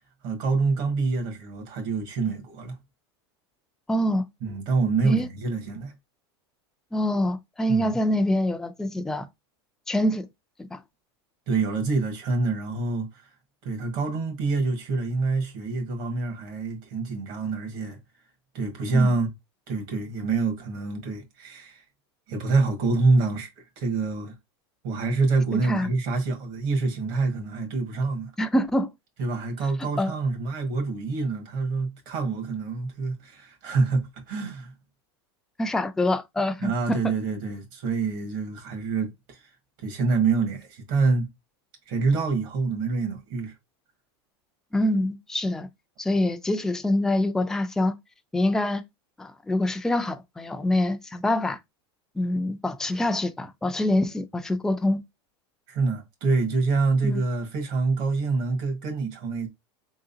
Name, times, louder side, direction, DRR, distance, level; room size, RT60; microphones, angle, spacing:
voice 1, 0.2-2.8 4.4-5.9 7.7-8.0 11.5-13.2 13.6-18.0 18.5-19.3 19.7-21.8 22.3-24.3 24.8-28.3 29.2-34.7 36.6-39.4 39.8-41.3 41.9-43.5 55.7-59.5, right 3 dB, 60° right, 1.7 m, -26 dB
voice 2, 3.9-4.3 5.0-5.3 6.9-9.3 9.9-10.3 10.6-10.8 18.9-19.1 25.7-25.9 28.4-28.9 29.8-30.1 35.6-37.0 44.7-45.7 46.0-47.9 48.3-48.8 49.2-51.6 52.2-55.0 57.0-57.2, left 1 dB, 5° left, 0.4 m, -25 dB
3.8 x 3.4 x 2.7 m
supercardioid pair, 135°, 14 cm